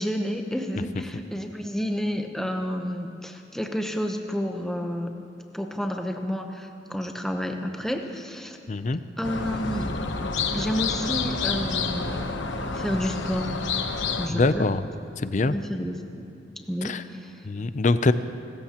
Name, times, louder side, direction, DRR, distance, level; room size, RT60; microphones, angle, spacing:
voice 1, 0.0-5.1 5.5-8.6 9.2-9.9 10.5-13.5 14.2-14.6 15.5-16.3 16.6-17.5, equal, ahead, 3 dB, 0.9 m, -30 dB
voice 2, 8.7-9.0 14.3-14.8 15.2-15.6 16.8-17.0 17.4-18.1, left 3 dB, 40° left, 12 dB, 0.5 m, -23 dB
sound 1, 9.2-14.3, left 4 dB, 80° left, 1.0 m, -29 dB
29.5 x 14.0 x 2.9 m, 2.8 s
head